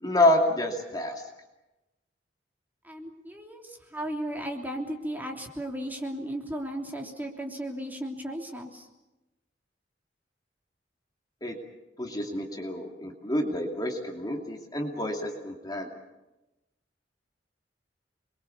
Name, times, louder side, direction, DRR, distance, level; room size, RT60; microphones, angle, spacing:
voice 1, 0.0-1.1 11.4-11.6 12.0-15.9, left 1 dB, 20° left, 2 dB, 2.6 m, -28 dB
voice 2, 2.8-8.9, right 1 dB, 10° right, 1 dB, 3.2 m, -35 dB
28.5 x 22.5 x 7.1 m, 1.0 s
head